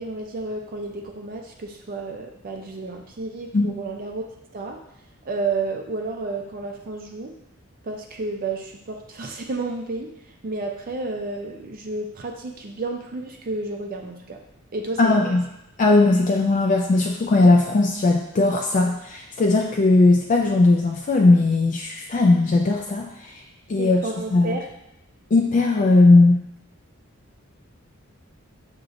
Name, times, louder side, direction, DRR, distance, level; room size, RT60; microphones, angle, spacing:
voice 1, 0.0-4.2 4.5-4.8 5.2-7.3 7.8-10.1 10.4-14.4 14.7-15.3 23.8-24.7, right 3 dB, 45° right, 2 dB, 0.5 m, -31 dB
voice 2, 15.0-15.4 15.8-23.4 23.7-24.0 24.3-24.5 25.3-26.4, left 2 dB, 40° left, 0 dB, 0.4 m, -18 dB
6.3 x 2.9 x 2.6 m, 0.86 s
head